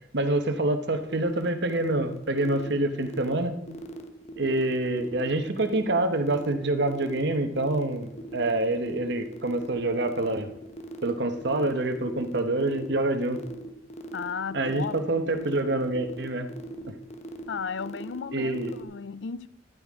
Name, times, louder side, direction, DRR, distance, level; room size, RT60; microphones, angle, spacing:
voice 1, 0.1-3.6 4.4-10.5 11.0-13.4 14.5-16.5 16.9-17.0 18.3-18.7, right 2 dB, 65° right, 1.2 m, -26 dB
sound 1, 1.1-18.8, right 3 dB, 35° left, 0.9 m, -40 dB
voice 2, 14.1-15.0 17.5-19.5, left 6 dB, 70° left, 0.5 m, -34 dB
13.0 x 11.5 x 3.7 m
head